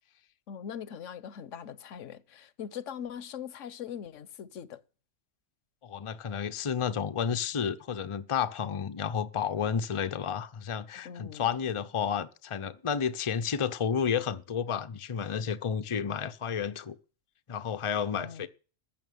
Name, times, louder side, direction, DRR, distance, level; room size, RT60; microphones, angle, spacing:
voice 1, 0.5-4.8 11.0-11.5 18.1-18.5, left 8 dB, 70° left, 1.2 m, -41 dB
voice 2, 5.8-17.0 17.5-18.5, left 7 dB, 30° left, 0.6 m, -31 dB
14.5 x 5.9 x 9.2 m
omnidirectional pair, 1.3 m